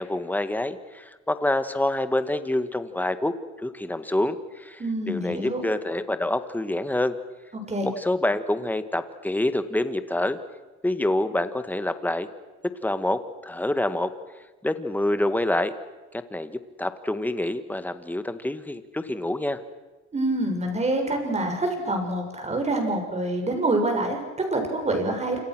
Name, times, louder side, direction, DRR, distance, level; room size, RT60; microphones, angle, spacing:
voice 1, 0.0-4.8 5.1-7.1 7.8-10.4 10.8-12.3 12.8-14.1 14.6-15.7 16.1-19.6, left 1 dB, 5° left, 10 dB, 1.8 m, -27 dB
voice 2, 4.8-5.6 7.7-7.9 20.1-25.4, right 2 dB, 20° right, 4 dB, 6.8 m, -26 dB
28.0 x 27.0 x 6.3 m, 1.2 s
cardioid pair, 120°, 29 cm